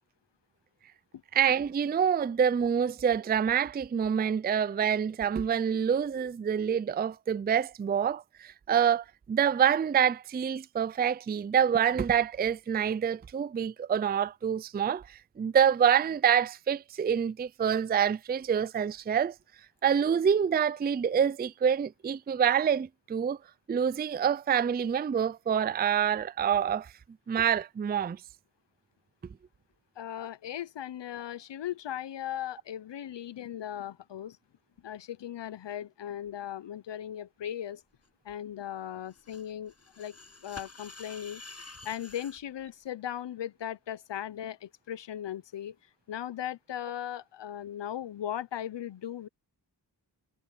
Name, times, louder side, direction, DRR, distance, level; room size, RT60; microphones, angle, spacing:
voice 1, 1.3-19.3 19.8-23.4 23.7-26.9 27.3-28.2, right 8 dB, 25° right, 0.4 m, -26 dB
voice 2, 30.0-34.4 34.8-37.8 38.2-41.4 41.8-45.8 46.1-49.3, left 10 dB, 85° left, 0.7 m, -38 dB
sound 1, 39.1-42.4, left 3 dB, 35° left, 6.9 m, -49 dB
wide cardioid pair, 70°, 42 cm